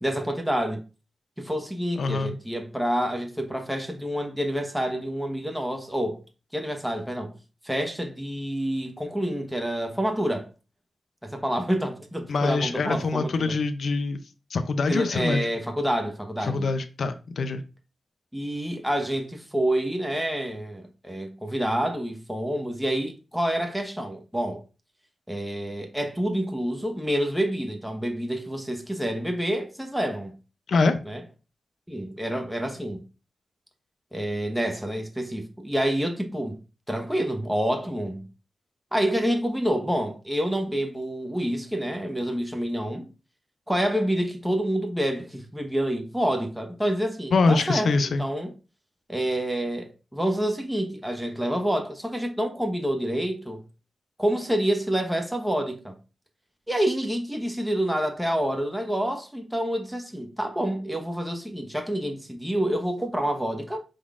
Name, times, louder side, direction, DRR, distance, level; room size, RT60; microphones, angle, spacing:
voice 1, 0.0-0.8 1.4-6.2 6.5-7.3 7.6-10.5 11.2-13.5 14.9-16.7 18.3-24.6 25.3-30.3 31.1-31.2 31.9-33.0 34.1-36.6 36.9-38.3 38.9-43.1 43.7-48.5 49.1-53.6 54.2-56.0 56.7-63.8, equal, 5° right, 1.0 m, -28 dB
voice 2, 2.0-2.4 12.3-14.2 14.5-15.5 16.4-17.6 30.7-31.0 47.3-48.2, left 3 dB, 75° left, 0.4 m, -24 dB
5.0 x 3.8 x 2.4 m
cardioid pair, 55°, 0 cm